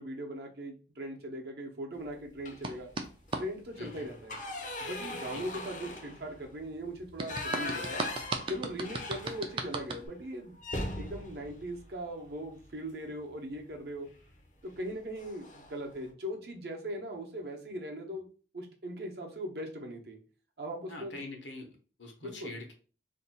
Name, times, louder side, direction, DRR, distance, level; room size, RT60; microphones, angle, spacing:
voice 1, 0.0-2.9 3.4-4.4 4.8-8.0 8.5-10.6 11.0-14.1 14.6-18.3 18.5-20.2 20.6-21.2 22.2-22.5, equal, 60° right, 2 dB, 0.7 m, -39 dB
sound 1, 2.4-2.8 3.2-3.4 3.7-9.8 10.1-10.2 10.6-12.7 14.1-14.3 14.7-14.9 15.2-15.8, left 2 dB, 45° left, 0.5 m, -40 dB
sound 2, 2.6-3.5 7.2-10.1, right 3 dB, 30° right, 0.3 m, -36 dB
voice 2, 3.8-4.1 5.3-5.5 20.9-22.7, left 2 dB, 85° left, 2 dB, 0.9 m, -44 dB
2.6 x 2.2 x 4.0 m, 0.38 s
head